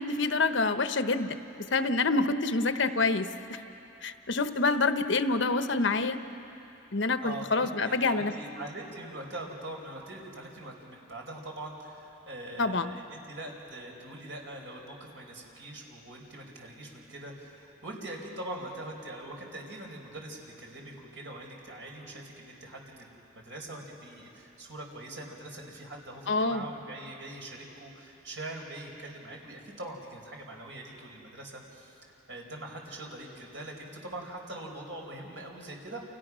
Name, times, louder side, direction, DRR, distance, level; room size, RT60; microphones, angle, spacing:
voice 1, 0.0-3.3 4.0-6.2 6.9-8.3 12.6-13.0 26.3-26.6, left 3 dB, 70° left, 9 dB, 1.0 m, -27 dB
voice 2, 7.2-32.0 32.3-36.0, right 1 dB, 70° right, 0 dB, 4.9 m, -43 dB
29.0 x 29.0 x 6.3 m, 2.9 s
head